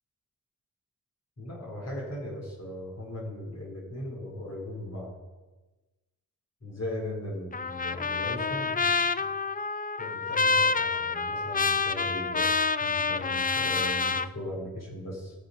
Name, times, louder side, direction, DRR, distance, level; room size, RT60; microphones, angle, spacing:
voice 1, 1.4-5.1 6.6-9.2 10.0-15.3, left 1 dB, 45° left, -3 dB, 4.4 m, -38 dB
Trumpet, 7.5-14.3, left 4 dB, 25° left, 0.4 m, -27 dB
15.5 x 6.6 x 5.4 m, 1.2 s
wide cardioid pair, 85°, 36 cm